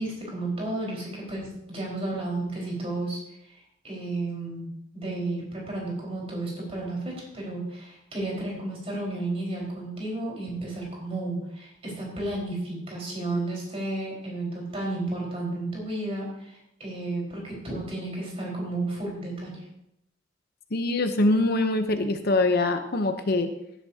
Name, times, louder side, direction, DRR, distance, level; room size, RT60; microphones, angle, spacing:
voice 1, 0.0-4.7 4.9-19.7, right 2 dB, 30° right, -3 dB, 4.7 m, -32 dB
voice 2, 20.7-23.5, left 2 dB, 50° left, 7 dB, 0.8 m, -23 dB
16.5 x 10.5 x 2.8 m, 0.79 s
head